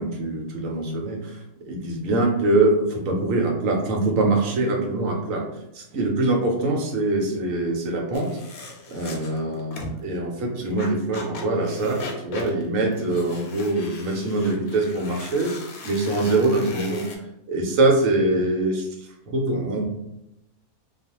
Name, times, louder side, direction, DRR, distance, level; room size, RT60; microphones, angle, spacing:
voice 1, 0.0-5.4 5.7-8.3 8.9-17.0 17.5-18.9 19.3-19.8, right 2 dB, 70° right, 0 dB, 1.0 m, -23 dB
sound 1, 8.1-10.0 10.6-17.2, left 3 dB, 80° left, 1.1 m, -39 dB
2.4 x 2.3 x 2.8 m, 0.84 s
omnidirectional pair, 1.6 m